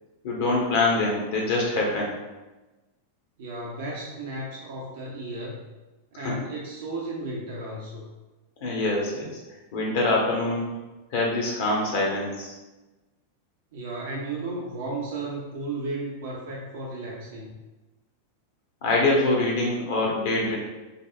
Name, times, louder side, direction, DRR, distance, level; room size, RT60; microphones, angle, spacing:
voice 1, 0.2-2.1 6.1-6.3 8.6-9.4 9.7-10.7 11.1-12.5 18.8-20.6, left 2 dB, 50° left, -2 dB, 0.9 m, -24 dB
voice 2, 3.4-5.6 6.2-8.1 13.7-17.5, right 2 dB, 55° right, -3 dB, 0.6 m, -34 dB
5.2 x 2.0 x 2.4 m, 1.1 s
figure-of-eight pair, 90°, 0 cm